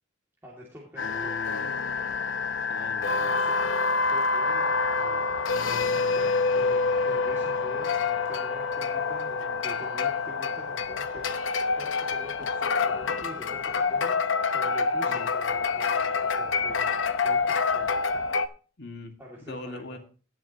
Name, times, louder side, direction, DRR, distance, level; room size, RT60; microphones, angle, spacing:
voice 1, 0.4-1.5 3.2-3.6 4.1-5.3 5.9-14.2 14.5-17.9 19.2-20.0, left 1 dB, 10° right, -5 dB, 2.6 m, -46 dB
sound 1, 1.0-18.5, left 4 dB, 85° left, 0.8 m, -27 dB
voice 2, 1.0-1.7 2.7-3.3 5.5-6.2 15.1-15.3 18.8-19.1 19.5-20.0, left 2 dB, 60° left, 4 dB, 2.0 m, -41 dB
17.5 x 7.5 x 3.0 m, 0.36 s
head